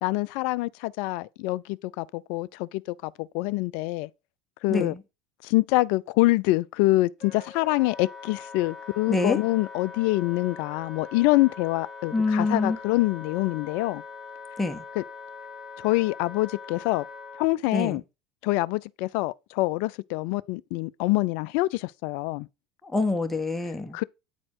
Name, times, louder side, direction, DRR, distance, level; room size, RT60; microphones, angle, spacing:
voice 1, 0.0-4.1 4.6-4.9 5.4-14.0 15.0-15.1 15.8-17.1 17.4-18.0 18.4-22.5 23.9-24.0, left 20 dB, 60° left, 0.4 m, -25 dB
voice 2, 4.7-5.0 9.1-9.4 12.1-12.8 14.6-14.8 17.7-18.0 22.8-24.0, left 3 dB, 10° left, 1.5 m, -26 dB
Wind instrument woodwind instrument, 7.2-17.5, left 5 dB, 25° right, 2.3 m, -42 dB
8.8 x 4.2 x 4.5 m
hypercardioid pair, 70°, 3 cm